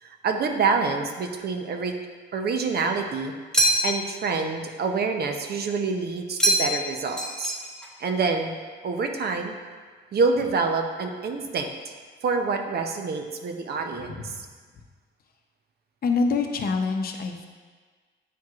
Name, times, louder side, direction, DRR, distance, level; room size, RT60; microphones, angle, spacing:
voice 1, 0.0-2.0 2.3-3.3 3.8-7.5 8.0-8.5 8.8-9.5 10.1-11.9 12.2-14.5, right 4 dB, 55° right, 4 dB, 0.7 m, -27 dB
sound 1, 3.5-4.2 6.4-6.9 7.2-7.9, right 1 dB, 5° left, 1.1 m, -23 dB
voice 2, 14.0-14.5 16.0-17.5, left 4 dB, 50° left, 4 dB, 0.7 m, -26 dB
9.1 x 4.6 x 2.4 m, 1.5 s
cardioid pair, 90°, 20 cm